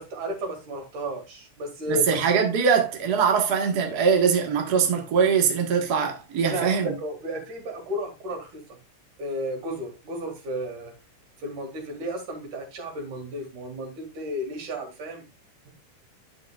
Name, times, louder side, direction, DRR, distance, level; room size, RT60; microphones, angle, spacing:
voice 1, 0.0-2.1 6.4-8.6 9.2-10.9 11.4-15.3 15.7-15.8, right 1 dB, 75° right, 3.7 m, -33 dB
voice 2, 1.9-6.9, right 6 dB, 45° right, 1.4 m, -22 dB
10.0 x 6.7 x 2.4 m
omnidirectional pair, 3.5 m